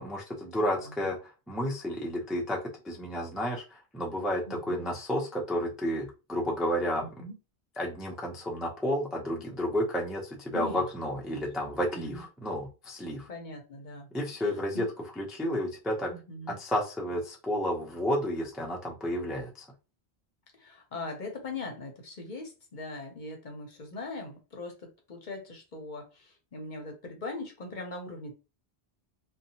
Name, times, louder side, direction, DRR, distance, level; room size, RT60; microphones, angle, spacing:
voice 1, 0.0-7.0 7.8-13.3 14.1-14.9 15.2-16.1 16.6-19.7, equal, ahead, -1 dB, 0.3 m, -31 dB
voice 2, 4.5-4.9 7.2-7.4 10.5-10.8 11.3-12.2 13.3-14.1 14.4-14.5 14.7-14.9 16.1-16.6 20.5-28.3, left 2 dB, 50° left, 3 dB, 0.7 m, -41 dB
2.7 x 2.3 x 2.7 m, 0.31 s
omnidirectional pair, 1.1 m